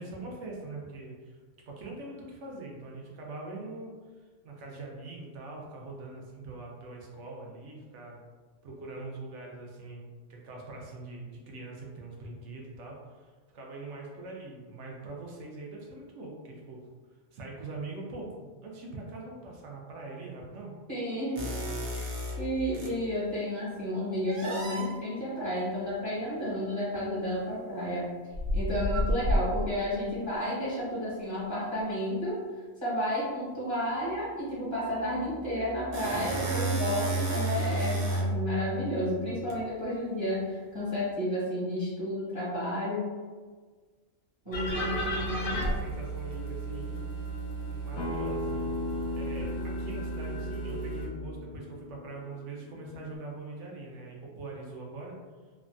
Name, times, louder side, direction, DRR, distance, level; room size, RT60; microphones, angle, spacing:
voice 1, 0.0-1.4 1.7-4.0 4.4-8.2 8.6-10.0 10.3-16.8 17.3-20.7 44.4-45.1 45.6-47.0 47.7-48.7 49.1-55.1, right 2 dB, 65° right, -1 dB, 0.8 m, -42 dB
voice 2, 20.9-21.6 22.0-28.0 28.5-32.3 32.8-43.1 44.4-45.6, equal, 25° right, -9 dB, 0.7 m, -32 dB
sound 1, 21.4-23.0 24.3-24.9 26.9-27.1 28.3-29.9 35.4-39.6, right 1 dB, 90° right, 1.1 m, -31 dB
sound 2, 44.5-51.1, right 2 dB, 50° left, 0.7 m, -34 dB
Acoustic guitar, 48.0-53.2, left 4 dB, 85° left, 1.1 m, -38 dB
3.3 x 2.1 x 2.4 m, 1.4 s
omnidirectional pair, 1.5 m